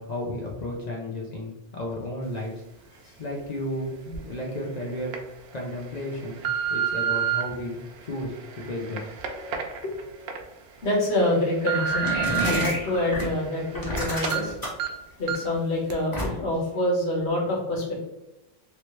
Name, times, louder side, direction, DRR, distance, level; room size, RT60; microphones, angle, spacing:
voice 1, 0.0-2.5 3.2-5.2 5.5-9.1 9.5-9.6, left 1 dB, 50° left, -1 dB, 0.6 m, -33 dB
sound 1, 4.1-4.2 4.9-5.2 5.8-7.4 8.1-10.4 10.8-10.9 11.3-12.6 13.1-14.0 14.2-14.4 14.8-14.9 15.3-15.5 15.9-16.0, right 8 dB, 90° right, 0.9 m, -29 dB
voice 2, 10.8-12.1 12.4-14.5 15.2-18.0, left 1 dB, 80° left, -3 dB, 1.4 m, -26 dB
sound 2, 11.7-13.3 13.7-14.9 16.1-16.6, equal, 20° left, 0.9 m, -28 dB
3.0 x 3.0 x 3.1 m, 1.0 s
omnidirectional pair, 1.1 m